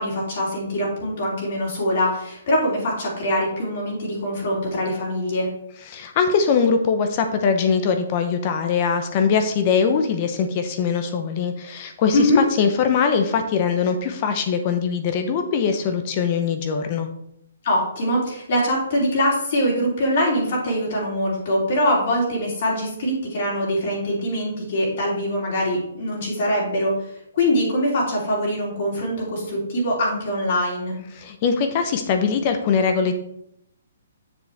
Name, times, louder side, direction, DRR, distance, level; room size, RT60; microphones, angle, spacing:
voice 1, 0.0-5.5 12.1-12.4 17.6-26.9 27.3-31.0, equal, 50° left, -4 dB, 3.1 m, -23 dB
voice 2, 5.9-17.1 31.1-33.1, left 6 dB, 30° left, 7 dB, 0.7 m, -22 dB
7.2 x 6.7 x 3.4 m, 0.75 s
hypercardioid pair, 165°, 0 cm